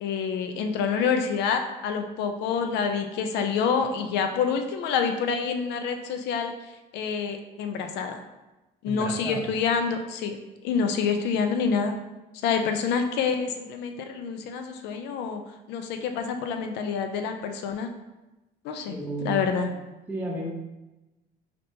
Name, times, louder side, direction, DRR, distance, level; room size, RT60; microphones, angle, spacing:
voice 1, 0.0-6.5 6.9-8.2 8.8-10.4 10.6-12.0 12.4-15.4 15.7-17.9 18.6-19.0 19.2-19.7, left 6 dB, 85° left, 6 dB, 0.4 m, -27 dB
voice 2, 8.9-9.5 18.9-19.8 20.1-20.5, right 2 dB, 10° right, -3 dB, 0.6 m, -33 dB
5.2 x 2.8 x 2.6 m, 1.0 s
cardioid pair, 110°, 17 cm